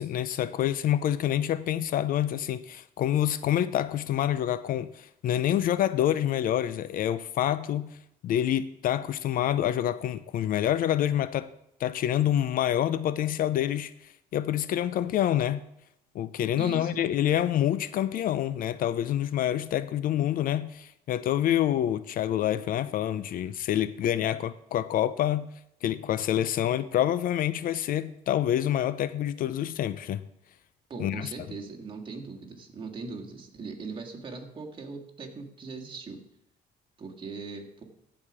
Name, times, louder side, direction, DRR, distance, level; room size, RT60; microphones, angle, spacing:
voice 1, 0.0-7.9 8.2-11.5 11.8-15.6 16.1-25.5 25.8-30.2 31.0-31.3, left 11 dB, 55° left, 0.4 m, -27 dB
voice 2, 16.5-17.1 30.9-36.2 37.0-37.8, right 4 dB, 30° right, 1.8 m, -40 dB
14.5 x 4.9 x 4.9 m
cardioid pair, 110°, 17 cm